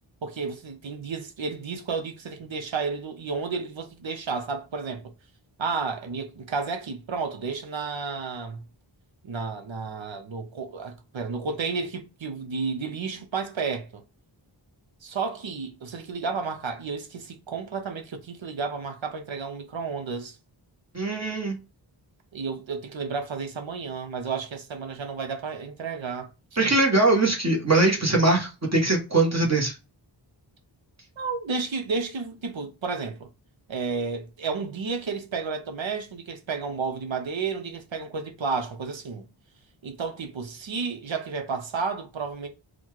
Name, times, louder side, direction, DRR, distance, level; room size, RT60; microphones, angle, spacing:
voice 1, 0.2-5.1 5.6-8.6 9.2-14.0 15.0-20.4 22.3-26.3 31.2-33.3 33.7-39.3 39.8-42.5, right 4 dB, 75° right, 0.9 m, -32 dB
voice 2, 20.9-21.6 26.6-29.8, right 2 dB, 35° right, 1.3 m, -21 dB
4.1 x 2.3 x 4.6 m
wide cardioid pair, 80°, 46 cm